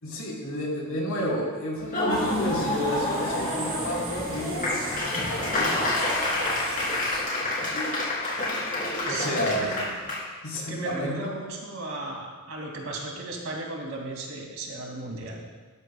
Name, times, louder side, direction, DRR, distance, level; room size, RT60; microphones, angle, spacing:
voice 1, 0.0-6.5 7.6-8.0 8.7-9.8 10.4-11.2, left 1 dB, 85° left, -4 dB, 4.1 m, -31 dB
Laughter / Applause, 1.8-10.2, left 1 dB, 40° left, 3.3 m, -28 dB
sound 1, 2.1-7.2, right 3 dB, 45° right, 3.4 m, -39 dB
voice 2, 7.4-7.8 9.1-9.9 10.7-15.4, right 2 dB, 75° right, -1 dB, 2.6 m, -36 dB
18.5 x 12.5 x 2.3 m, 1.5 s
head